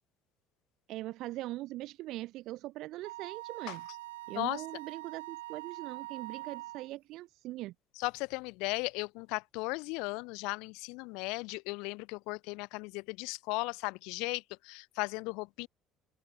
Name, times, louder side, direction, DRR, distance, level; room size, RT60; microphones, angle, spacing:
voice 1, 0.9-3.9 4.3-7.7, right 17 dB, 65° right, 1.2 m, -41 dB
Wind instrument woodwind instrument, 3.0-6.9, right 17 dB, 90° right, 0.3 m, -44 dB
voice 2, 8.0-15.7, left 27 dB, 75° left, 0.4 m, -36 dB
open air
hypercardioid pair, 70°, 0 cm